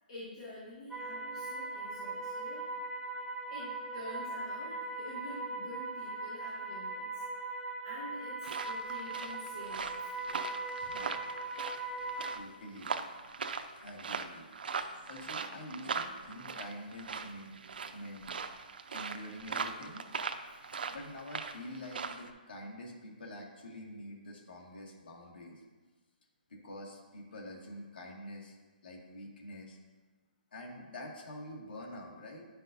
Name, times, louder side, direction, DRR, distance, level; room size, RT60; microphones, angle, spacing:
voice 1, 0.1-2.7 3.5-7.2 7.8-10.1, left 1 dB, 45° left, -8 dB, 1.8 m, -47 dB
sound 1, 0.9-12.4, right 2 dB, ahead, 0.4 m, -40 dB
sound 2, 8.4-22.3, right 5 dB, 70° right, 0.6 m, -40 dB
voice 2, 10.7-11.3 12.3-12.9 13.8-14.5 15.1-17.5 17.9-18.3 18.9-20.1 20.9-25.6 26.5-28.6 28.8-29.8 30.5-32.4, left 1 dB, 80° left, -2 dB, 2.0 m, -46 dB
9.9 x 5.5 x 2.7 m, 1.3 s
hypercardioid pair, 170°, 5 cm